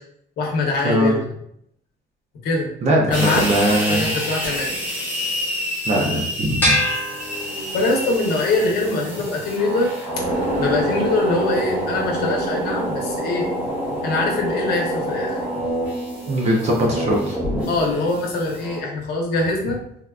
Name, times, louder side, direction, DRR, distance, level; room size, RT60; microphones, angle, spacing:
voice 1, 0.4-1.2 2.4-2.7 3.1-3.5 3.9-4.7 7.7-9.9 10.2-10.3 10.6-13.5 14.0-15.4 17.7-19.8, left 3 dB, 60° left, -1 dB, 0.8 m, -23 dB
voice 2, 2.8-4.1 5.8-6.8 16.3-17.4, right 1 dB, 40° right, -1 dB, 0.5 m, -20 dB
sound 1, 3.1-18.8, equal, 5° right, 1.0 m, -27 dB
sound 2, 6.6-8.1, left 1 dB, 10° left, 0.5 m, -23 dB
3.4 x 2.3 x 2.3 m, 0.72 s
cardioid pair, 180°, 18 cm